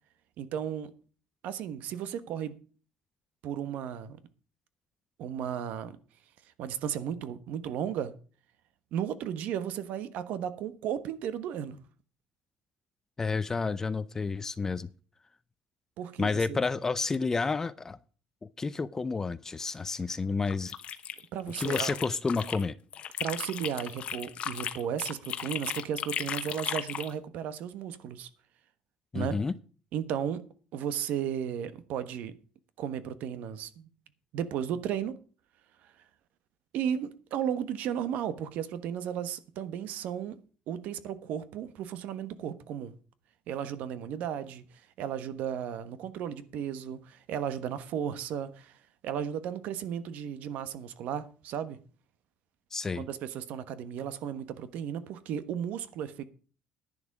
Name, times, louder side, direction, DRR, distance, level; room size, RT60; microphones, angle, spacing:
voice 1, 0.4-0.9 1.4-2.6 3.4-4.2 5.2-6.0 6.6-8.1 8.9-11.8 16.0-16.6 21.3-22.0 23.2-28.3 29.1-29.4 29.9-32.4 32.8-33.9 34.3-35.2 36.7-40.4 40.7-42.9 43.5-44.6 45.0-48.8 49.0-51.8 52.9-56.2, right 9 dB, 65° right, 1.2 m, -34 dB
voice 2, 13.2-14.9 16.2-18.0 18.4-20.7 21.6-22.8 29.1-29.6 52.7-53.1, left 4 dB, 15° left, 0.5 m, -30 dB
sound 1, 20.5-22.7 22.9-27.1, left 9 dB, 40° left, 1.1 m, -36 dB
10.5 x 10.0 x 4.8 m
cardioid pair, 155°, 3 cm